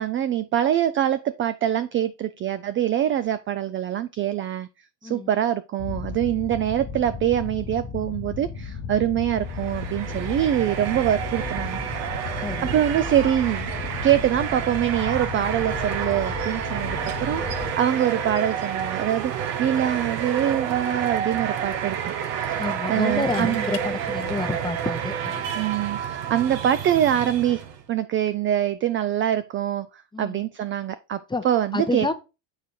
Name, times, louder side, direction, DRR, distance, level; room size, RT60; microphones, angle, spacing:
voice 1, 0.0-4.7 5.0-11.8 12.6-13.7 14.0-22.0 22.4-22.5 22.9-23.6 25.5-32.1, right 11 dB, 30° right, 0.3 m, -24 dB
sound 1, 5.8-17.7, left 6 dB, 40° left, 1.2 m, -34 dB
sound 2, 9.3-27.8, right 8 dB, 80° right, 1.1 m, -30 dB
voice 2, 12.4-12.7 22.5-25.4 30.1-30.4 31.3-31.4 31.7-32.1, left 3 dB, 10° left, 0.9 m, -29 dB
sound 3, 20.2-20.4 20.8-20.9 23.0-23.9 25.7-25.9, left 13 dB, 80° left, 1.2 m, -42 dB
6.7 x 4.9 x 4.1 m
hypercardioid pair, 85°, 50 cm